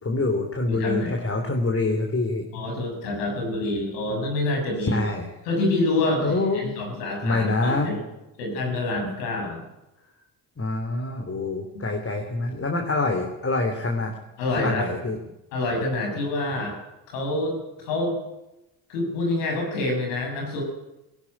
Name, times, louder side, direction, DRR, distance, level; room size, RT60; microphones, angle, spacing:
voice 1, 0.0-2.4 4.8-5.3 6.2-6.9 7.2-7.9 10.6-14.1 14.5-15.2, left 2 dB, 30° left, 3 dB, 3.5 m, -26 dB
voice 2, 0.7-1.2 2.5-5.0 5.4-8.0 8.4-9.6 14.4-14.9 15.5-16.7 17.1-18.2 18.9-20.6, left 2 dB, 90° left, 2 dB, 6.7 m, -27 dB
17.0 x 16.5 x 10.0 m, 0.94 s
supercardioid pair, 60°, 47 cm